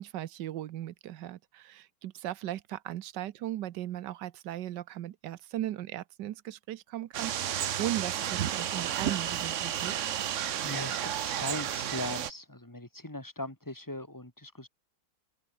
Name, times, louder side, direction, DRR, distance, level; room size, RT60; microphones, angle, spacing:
voice 1, 0.0-10.0, right 13 dB, 85° right, 1.4 m, -37 dB
sound 1, 7.1-12.3, right 10 dB, 55° right, 1.0 m, -32 dB
voice 2, 10.6-14.7, left 1 dB, 10° left, 3.4 m, -39 dB
open air
omnidirectional pair, 1.9 m